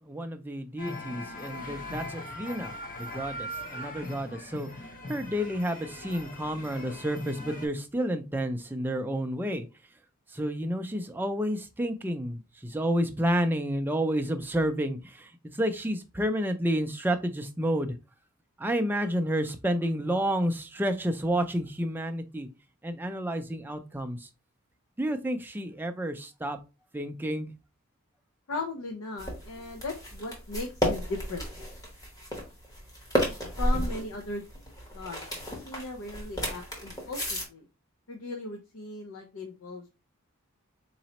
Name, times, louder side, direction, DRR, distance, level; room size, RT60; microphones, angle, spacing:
voice 1, 0.0-4.7 5.1-9.7 10.3-18.0 18.6-22.5 22.8-24.3 25.0-26.6 26.9-27.5, equal, 10° right, 0.4 m, -30 dB
sound 1, 0.8-7.7, left 1 dB, 40° left, 0.8 m, -40 dB
voice 2, 28.5-31.5 33.6-34.4 34.9-35.2 35.6-37.7 38.1-39.9, left 2 dB, 70° left, 0.6 m, -37 dB
sound 2, 29.2-37.5, equal, 15° left, 1.1 m, -32 dB
4.0 x 3.0 x 2.8 m
head